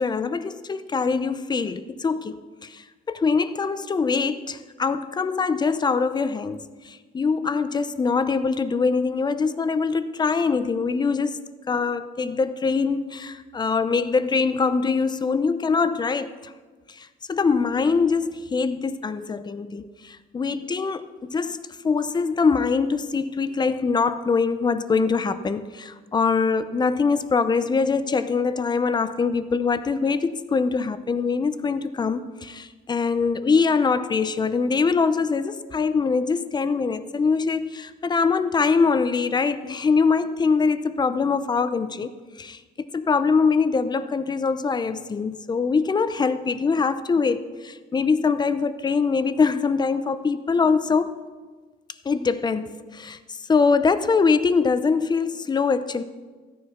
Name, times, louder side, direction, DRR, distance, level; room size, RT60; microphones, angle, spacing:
voice 1, 0.0-11.4 11.7-16.5 16.9-42.1 42.4-51.2 52.0-56.0, left 5 dB, 25° left, 0.7 m, -23 dB
13.5 x 9.8 x 5.8 m
cardioid pair, 110°, 17 cm